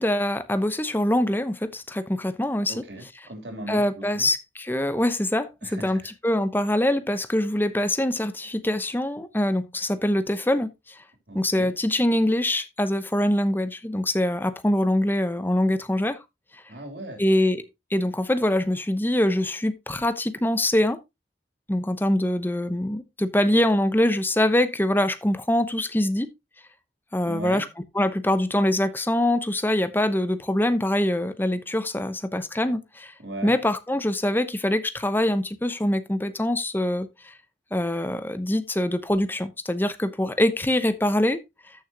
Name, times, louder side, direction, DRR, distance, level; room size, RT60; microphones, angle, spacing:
voice 1, 0.0-2.8 3.7-10.7 11.3-16.2 17.2-17.6 17.9-21.0 21.7-26.3 27.1-27.7 27.9-33.1 33.4-37.3 37.7-41.4, left 1 dB, 10° left, 0.8 m, -24 dB
voice 2, 2.7-4.3 5.6-6.1 11.3-11.7 16.7-17.2 27.2-27.6 33.2-33.5, right 1 dB, 70° right, 3.1 m, -38 dB
13.5 x 6.2 x 2.8 m
head